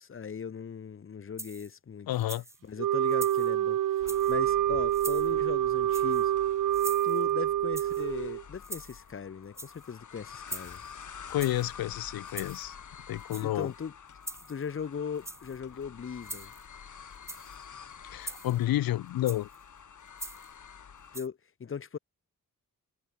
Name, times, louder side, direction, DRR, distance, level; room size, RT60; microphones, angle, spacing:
voice 1, 0.0-2.1 2.6-6.3 7.0-10.8 13.4-13.9 14.5-16.5 21.1-22.0, left 6 dB, 40° left, 0.9 m, -38 dB
sound 1, 1.4-1.8 2.1-2.6 3.1-3.5 4.0-4.4 4.9-5.3 5.9-6.3 6.7-7.3 7.7-8.1 8.6-9.1 9.4-9.9 10.5-10.9 11.4-11.7 12.3-12.7 13.2-13.7 14.2-14.7 15.2-15.6 16.2-16.7 17.1-17.6 18.2-18.6 19.3-19.6 20.2-20.5 21.1-21.3, right 2 dB, 10° right, 0.8 m, -43 dB
voice 2, 2.1-2.4 11.3-12.7 13.1-13.7 18.1-19.5, left 14 dB, 85° left, 0.5 m, -30 dB
Wind instrument woodwind instrument, 2.8-8.4, right 12 dB, 65° right, 0.6 m, -27 dB
sound 2, 4.0-21.2, left 7 dB, 60° left, 6.9 m, -48 dB
wide cardioid pair, 140°, 34 cm